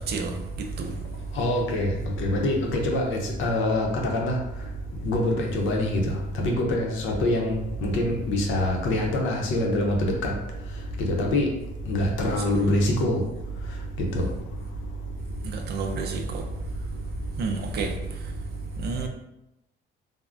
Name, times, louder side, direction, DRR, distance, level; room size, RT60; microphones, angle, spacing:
voice 1, 0.6-0.9 12.2-12.7 15.4-16.4 17.4-17.9 18.8-19.1, right 4 dB, 55° right, 4 dB, 0.4 m, -31 dB
voice 2, 1.3-4.4 5.0-10.3 11.1-11.5 11.9-13.2 14.1-14.3, left 1 dB, 85° left, 0 dB, 0.7 m, -25 dB
3.4 x 2.0 x 2.5 m, 0.91 s
cardioid pair, 160°, 20 cm